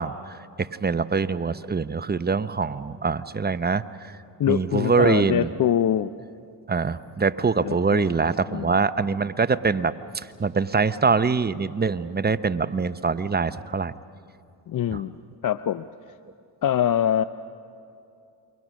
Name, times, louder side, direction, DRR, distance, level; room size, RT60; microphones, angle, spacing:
voice 1, 0.0-4.2 4.5-5.5 6.7-13.9 14.9-15.0, right 4 dB, 20° right, 13 dB, 0.8 m, -24 dB
voice 2, 4.4-6.1 7.6-8.1 8.5-8.7 14.7-15.2 15.4-15.8 16.6-17.2, left 10 dB, 45° left, 13 dB, 0.6 m, -24 dB
28.5 x 23.0 x 6.3 m, 2.5 s
supercardioid pair, 65°, 44 cm